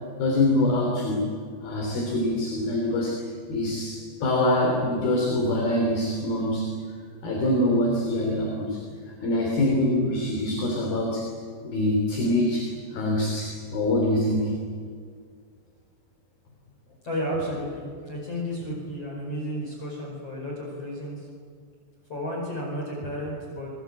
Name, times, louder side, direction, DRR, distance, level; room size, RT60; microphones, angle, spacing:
voice 1, 0.2-1.2 1.6-6.7 7.2-8.8 9.2-11.3 11.6-14.6, left 1 dB, 55° left, 0 dB, 4.9 m, -24 dB
voice 2, 17.0-21.3 22.1-23.7, equal, 35° left, -1 dB, 5.9 m, -32 dB
26.5 x 22.5 x 8.8 m, 2.1 s
omnidirectional pair, 5.2 m